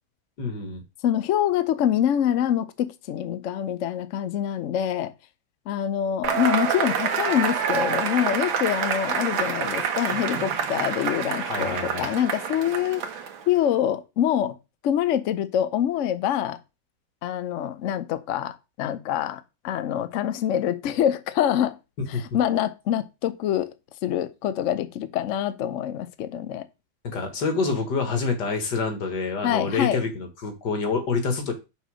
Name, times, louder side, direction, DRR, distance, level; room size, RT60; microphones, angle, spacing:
voice 1, 0.4-0.8 11.5-12.1 22.1-22.2 27.0-31.5, left 4 dB, 60° left, 2.1 m, -27 dB
voice 2, 1.0-5.1 5.7-13.1 13.5-14.6 14.8-16.6 17.2-21.8 22.1-23.7 24.0-26.7 29.4-30.0, left 10 dB, 75° left, 0.6 m, -25 dB
Cheering / Applause / Crowd, 6.2-13.5, right 7 dB, 90° right, 1.8 m, -27 dB
5.6 x 4.2 x 6.1 m
omnidirectional pair, 2.1 m